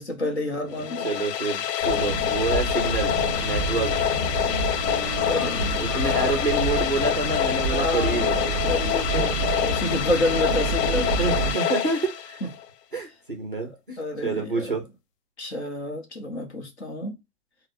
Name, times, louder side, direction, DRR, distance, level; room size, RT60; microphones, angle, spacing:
voice 1, 0.0-1.1 5.2-6.3 7.7-8.3 8.7-11.1 12.4-12.5 13.6-13.7 14.0-14.7 15.4-17.2, left 1 dB, 45° left, 0.7 m, -29 dB
sound 1, 0.7-12.6, left 10 dB, 85° left, 0.6 m, -26 dB
voice 2, 0.7-4.1 5.8-8.6 9.1-9.2 10.5-10.6 10.9-12.4 12.9-14.8, right 3 dB, 35° right, 0.5 m, -28 dB
sound 2, 1.7-12.0, right 4 dB, 5° right, 1.0 m, -46 dB
sound 3, 1.8-11.5, right 2 dB, 10° left, 1.8 m, -29 dB
4.1 x 2.0 x 2.5 m
hypercardioid pair, 180°, 47 cm